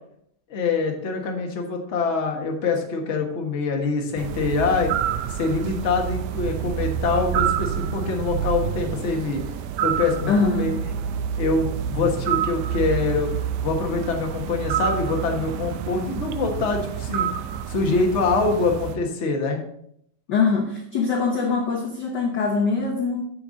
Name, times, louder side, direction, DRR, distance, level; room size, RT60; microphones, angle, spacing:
voice 1, 0.5-4.9 5.3-9.4 9.8-10.8 11.4-13.3 13.6-17.3 17.7-19.6, left 4 dB, 45° left, 1 dB, 0.9 m, -24 dB
sound 1, 4.2-19.0, right 9 dB, 90° right, 2.0 m, -28 dB
voice 2, 10.3-10.8 20.3-23.2, left 4 dB, 70° left, 2 dB, 1.0 m, -23 dB
8.6 x 7.0 x 4.0 m, 0.69 s
omnidirectional pair, 3.3 m